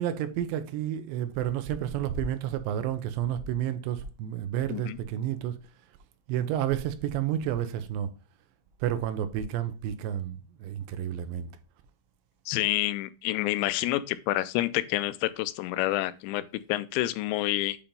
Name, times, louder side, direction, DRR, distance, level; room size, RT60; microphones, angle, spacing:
voice 1, 0.0-5.5 6.3-8.1 8.8-11.5, right 10 dB, 80° right, 2.8 m, -30 dB
voice 2, 12.5-17.8, left 16 dB, 85° left, 2.8 m, -28 dB
8.6 x 2.9 x 5.1 m
omnidirectional pair, 5.1 m